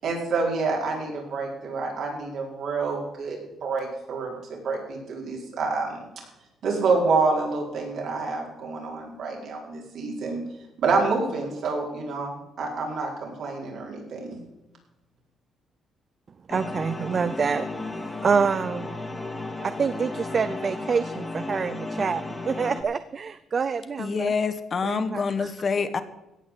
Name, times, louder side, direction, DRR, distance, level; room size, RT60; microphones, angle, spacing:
voice 1, 0.0-6.0 6.6-10.4 10.8-14.4, right 4 dB, 70° right, -1 dB, 4.7 m, -28 dB
sound 1, 16.5-22.8, left 2 dB, 25° left, 2.0 m, -34 dB
voice 2, 16.5-19.0 19.6-24.3 24.8-25.5, right 5 dB, 45° right, 13 dB, 0.6 m, -27 dB
voice 3, 24.0-26.0, left 5 dB, 45° left, 11 dB, 1.2 m, -26 dB
16.5 x 6.3 x 7.6 m, 0.95 s
cardioid pair, 90°, 0 cm